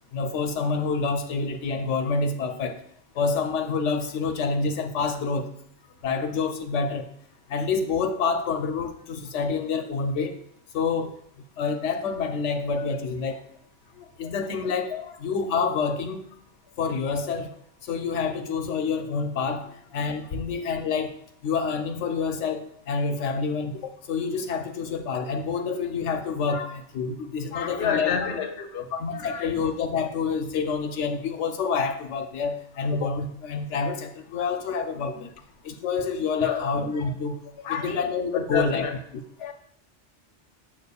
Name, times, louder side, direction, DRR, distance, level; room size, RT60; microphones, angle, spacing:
voice 1, 0.1-2.8 3.2-5.5 6.0-7.1 7.5-10.4 10.7-11.1 11.6-13.4 14.2-14.9 15.2-16.2 16.8-17.5 17.8-21.1 21.4-28.2 28.9-35.3 35.6-37.4 37.7-38.8, left 5 dB, 85° left, 6 dB, 0.9 m, -27 dB
voice 2, 14.0-14.3 14.9-15.0 26.5-26.7 27.5-28.9 29.1-29.4 34.3-34.4 36.4-36.7 37.6-38.0 38.5-38.9 39.4-39.5, left 6 dB, 60° left, 5 dB, 1.0 m, -29 dB
7.4 x 6.7 x 2.3 m, 0.68 s
omnidirectional pair, 1.2 m